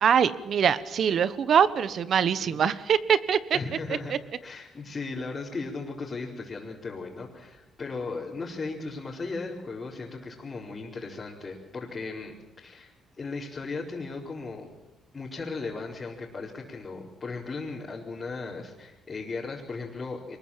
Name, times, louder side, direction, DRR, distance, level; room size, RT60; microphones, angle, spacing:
voice 1, 0.0-3.6 4.1-4.2, right 8 dB, 60° right, 15 dB, 1.2 m, -23 dB
voice 2, 3.5-4.1 4.4-14.7 15.1-20.4, left 3 dB, 35° left, -5 dB, 4.6 m, -37 dB
24.0 x 21.0 x 7.5 m, 0.98 s
cardioid pair, 90°, 0 cm